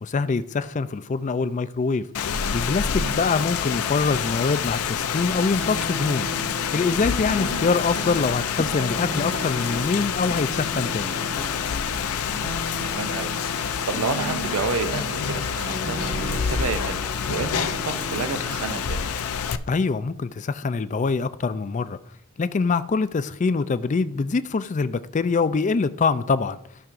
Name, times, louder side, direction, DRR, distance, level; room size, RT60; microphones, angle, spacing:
voice 1, 0.0-2.1 2.5-6.3 6.7-11.1 19.7-22.0 22.4-26.6, left 4 dB, 35° left, 0.3 m, -24 dB
Rain, 2.1-19.6, left 7 dB, 85° left, 0.5 m, -27 dB
sound 1, 5.6-19.1, right 1 dB, 55° right, 1.0 m, -36 dB
sound 2, 5.7-11.8, equal, ahead, 0.8 m, -40 dB
voice 2, 12.3-19.1, right 5 dB, 70° right, 0.5 m, -31 dB
15.0 x 5.9 x 2.5 m
head